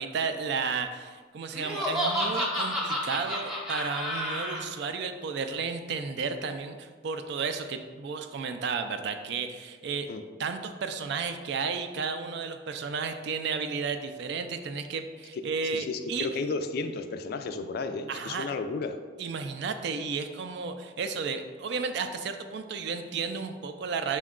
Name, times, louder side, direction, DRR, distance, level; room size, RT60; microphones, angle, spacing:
voice 1, 0.0-10.1 10.4-16.3 18.1-18.5 19.2-24.2, right 5 dB, 65° right, 8 dB, 0.4 m, -33 dB
Laughter, 1.5-4.6, equal, ahead, 0.7 m, -30 dB
voice 2, 15.7-19.0, left 3 dB, 55° left, 8 dB, 0.3 m, -33 dB
6.0 x 2.2 x 3.6 m, 1.5 s
head